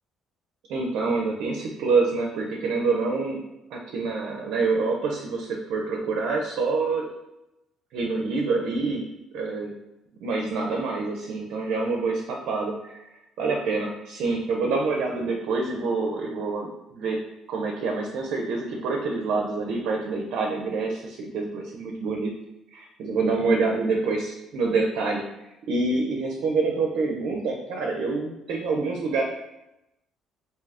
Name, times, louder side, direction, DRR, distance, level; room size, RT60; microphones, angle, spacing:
voice 1, 0.7-3.4 3.7-7.1 7.9-9.1 9.3-9.7 10.2-13.0 13.4-17.2 17.5-22.3 22.7-25.2 25.7-29.2, right 3 dB, 75° right, 0 dB, 0.4 m, -26 dB
2.7 x 2.3 x 3.3 m, 0.91 s
cardioid pair, 90°, 0 cm